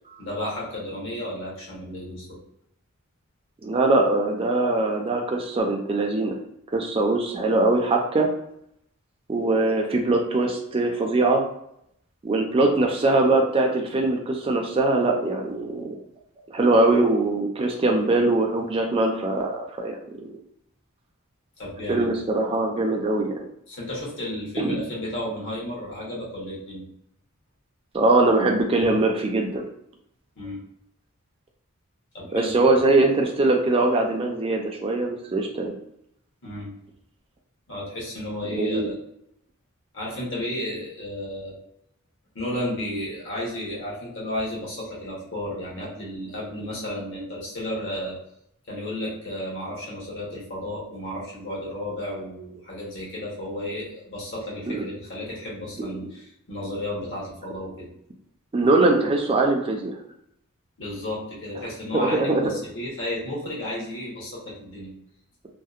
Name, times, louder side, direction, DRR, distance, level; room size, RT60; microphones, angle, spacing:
voice 1, 0.2-2.4 21.6-22.1 23.7-26.8 30.4-30.6 32.1-32.7 36.4-36.7 37.7-39.0 39.9-41.6 42.3-48.2 48.7-57.9 60.8-64.9, left 1 dB, 60° left, -5 dB, 0.9 m, -33 dB
voice 2, 3.6-6.4 6.7-8.3 9.3-11.4 12.2-16.0 16.5-20.3 21.9-23.3 24.6-24.8 27.9-29.7 32.3-35.7 38.5-38.9 54.7-54.9 55.8-55.9 58.5-60.0 61.9-62.5, right 2 dB, 25° right, 2 dB, 0.3 m, -22 dB
2.7 x 2.1 x 2.4 m, 0.75 s
head